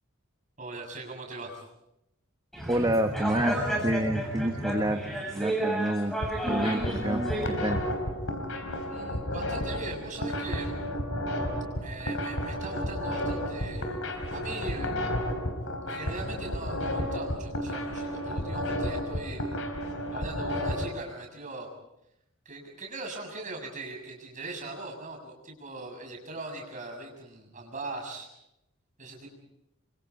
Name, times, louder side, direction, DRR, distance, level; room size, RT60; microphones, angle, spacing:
voice 1, 0.6-1.6 8.9-10.7 11.8-14.0 14.3-14.9 15.9-19.5 20.1-21.7 22.5-28.3 29.0-29.3, right 2 dB, 35° right, 2 dB, 7.0 m, -40 dB
sound 1, 2.5-7.4, right 1 dB, ahead, 7.5 m, -31 dB
voice 2, 2.7-5.0 5.3-6.2 6.5-7.2 7.6-7.8, right 1 dB, 20° right, 5 dB, 1.1 m, -28 dB
sound 2, 6.1-20.8, equal, 70° left, 3.9 m, -32 dB
28.0 x 25.0 x 4.9 m, 0.83 s
head